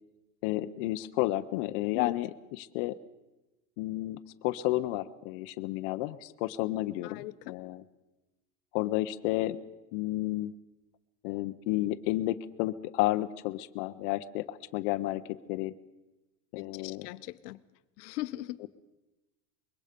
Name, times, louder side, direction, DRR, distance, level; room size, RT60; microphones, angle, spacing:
voice 1, 0.4-2.9 3.8-7.8 8.7-9.6 9.9-10.5 11.2-15.7 16.5-17.1 18.6-18.7, left 16 dB, 50° left, 9 dB, 0.7 m, -31 dB
voice 2, 7.0-7.6 16.6-17.6 18.0-18.6, left 18 dB, 90° left, 13 dB, 0.9 m, -39 dB
24.5 x 22.0 x 5.1 m, 1.0 s
cardioid pair, 175°, 46 cm